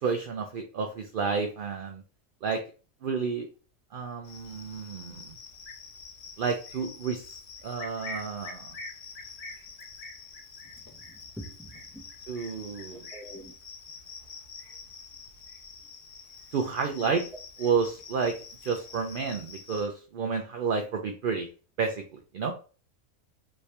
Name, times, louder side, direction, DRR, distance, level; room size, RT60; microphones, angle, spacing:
voice 1, 0.0-2.0 2.4-2.6 3.0-3.5 3.9-5.3 6.4-7.4 7.6-8.8 12.3-13.1 16.5-17.2 17.6-18.3 18.6-21.5 21.8-22.5, right 5 dB, 70° right, 3 dB, 0.5 m, -30 dB
Cricket, 4.2-19.9, left 4 dB, 65° left, 1.3 m, -45 dB
voice 2, 10.8-12.0 12.9-13.5, right 1 dB, ahead, -1 dB, 0.6 m, -45 dB
3.2 x 2.8 x 3.2 m, 0.36 s
omnidirectional pair, 1.4 m